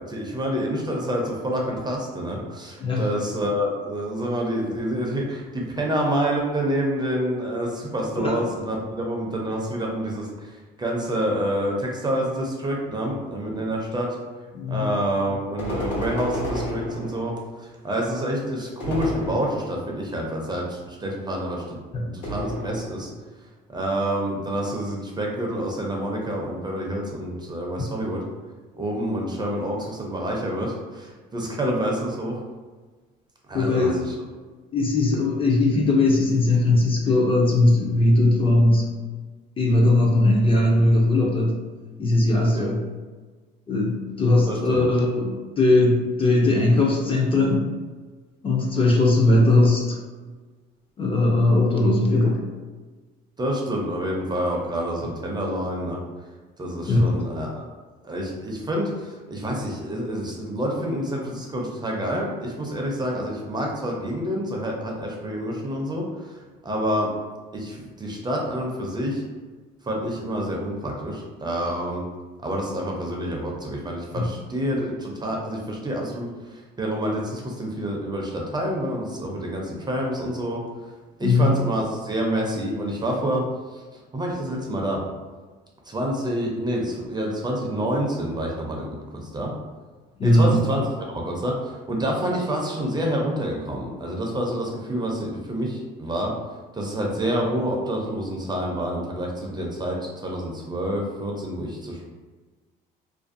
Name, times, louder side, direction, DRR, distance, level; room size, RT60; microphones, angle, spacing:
voice 1, 0.1-14.1 14.7-23.1 23.7-28.2 28.8-32.4 33.5-34.1 42.5-42.7 44.5-44.8 53.4-56.0 56.6-57.6 58.0-67.1 67.5-69.2 69.8-72.0 72.4-80.6 81.2-83.4 83.7-83.8 84.1-85.0 85.9-89.6 90.2-96.3 96.7-102.0, equal, 20° right, -1 dB, 0.5 m, -28 dB
voice 2, 14.5-14.9 21.9-22.2 33.5-34.0 34.7-38.9 39.6-41.6 42.0-42.8 43.7-47.7 48.4-50.0 51.0-52.4 56.9-57.2 74.2-74.3 81.2-81.6 90.2-90.6, left 2 dB, 25° left, -2 dB, 0.5 m, -19 dB
sound 1, 15.6-17.5 18.8-20.0 22.2-23.2, equal, 60° left, 1.2 m, -31 dB
2.5 x 2.2 x 2.5 m, 1.3 s
supercardioid pair, 90°, 20 cm